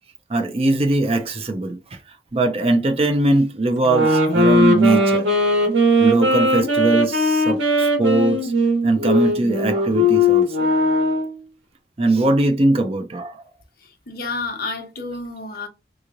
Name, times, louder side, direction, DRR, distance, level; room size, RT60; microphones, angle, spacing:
voice 1, 0.3-1.8 2.3-5.3 6.0-8.5 8.8-10.7 12.0-13.4, right 2 dB, 30° right, 0.5 m, -20 dB
sound 1, 3.8-11.4, left 1 dB, 80° right, 1.4 m, -19 dB
voice 2, 13.8-15.7, left 3 dB, 50° left, 0.9 m, -30 dB
3.7 x 3.0 x 2.5 m
head